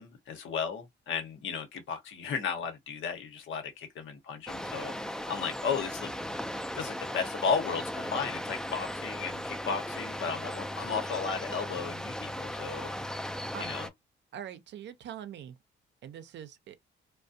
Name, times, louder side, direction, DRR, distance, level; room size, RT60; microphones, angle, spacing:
voice 1, 0.0-4.9 5.3-6.1 6.7-13.0 13.6-13.9, left 6 dB, 75° left, 0.9 m, -34 dB
sound 1, 4.5-13.9, equal, 5° left, 0.3 m, -37 dB
voice 2, 14.3-15.6 16.0-16.9, right 9 dB, 65° right, 0.5 m, -43 dB
2.4 x 2.1 x 2.6 m
cardioid pair, 90°, 20 cm